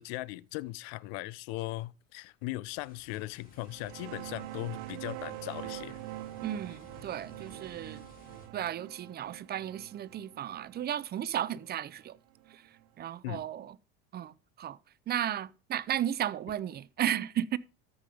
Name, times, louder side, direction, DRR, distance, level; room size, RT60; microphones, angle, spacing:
voice 1, 0.0-6.0 13.2-13.4, left 19 dB, 75° left, 0.7 m, -38 dB
sound 1, 2.7-8.5, left 3 dB, 25° left, 3.4 m, -57 dB
sound 2, 3.6-12.9, right 16 dB, 70° right, 0.7 m, -45 dB
voice 2, 6.4-8.0 8.5-12.2 12.5-12.6 13.0-13.8 14.1-14.8 15.1-17.6, right 11 dB, 30° right, 0.5 m, -34 dB
13.5 x 5.5 x 5.0 m
supercardioid pair, 115°, 32 cm